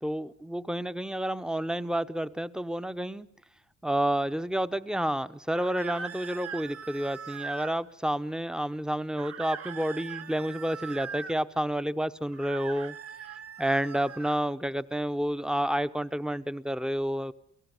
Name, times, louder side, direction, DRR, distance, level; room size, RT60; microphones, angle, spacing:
voice 1, 0.0-3.3 3.8-12.9 13.6-17.3, right 1 dB, ahead, 0.9 m, -30 dB
sound 1, 5.5-7.8 9.2-11.4 12.3-14.4, right 6 dB, 50° right, 1.4 m, -41 dB
29.5 x 17.5 x 9.7 m
cardioid pair, 90°, 30 cm